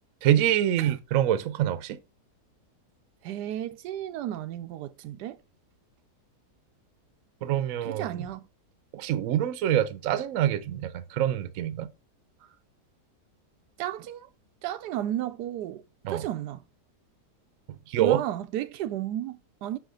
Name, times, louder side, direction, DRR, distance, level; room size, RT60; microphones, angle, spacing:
voice 1, 0.2-2.0 7.4-8.1 8.9-11.9 16.0-16.2 17.9-18.2, right 11 dB, 65° right, 1.0 m, -25 dB
voice 2, 3.2-5.4 7.8-8.5 12.4-12.5 13.8-14.3 14.6-16.6 18.0-19.8, right 12 dB, 85° right, 1.2 m, -33 dB
6.5 x 4.9 x 3.7 m
omnidirectional pair, 1.7 m